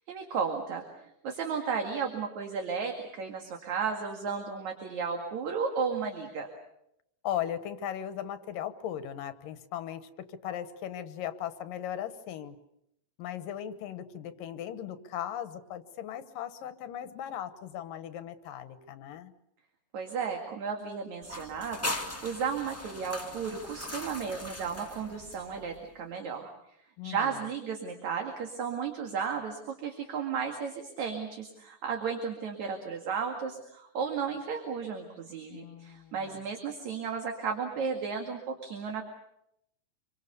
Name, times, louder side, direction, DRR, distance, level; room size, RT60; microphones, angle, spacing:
voice 1, 0.1-0.8 1.2-6.5 19.9-21.9 22.2-26.5 27.0-39.1, right 6 dB, 60° right, 3 dB, 3.3 m, -34 dB
voice 2, 7.2-12.6 13.2-19.3 27.0-27.5 35.5-36.5, left 10 dB, 85° left, 11 dB, 2.9 m, -38 dB
sound 1, 21.2-25.8, left 1 dB, 10° left, 0.6 m, -39 dB
27.0 x 24.0 x 6.9 m, 0.80 s
omnidirectional pair, 3.8 m